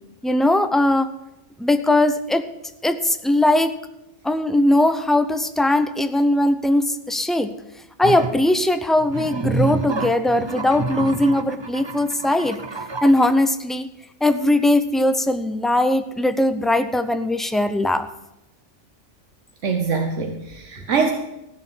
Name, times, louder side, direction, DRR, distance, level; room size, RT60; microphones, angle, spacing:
voice 1, 0.2-1.1 1.6-2.5 2.8-3.7 4.2-7.5 8.0-12.6 13.0-13.9 14.2-18.1, left 1 dB, ahead, 10 dB, 0.4 m, -19 dB
sound 1, 8.0-8.4 9.0-13.3, right 3 dB, 25° right, 0.8 m, -28 dB
voice 2, 19.6-21.1, right 5 dB, 80° right, 4 dB, 1.4 m, -23 dB
15.5 x 6.6 x 8.8 m, 0.89 s
omnidirectional pair, 1.2 m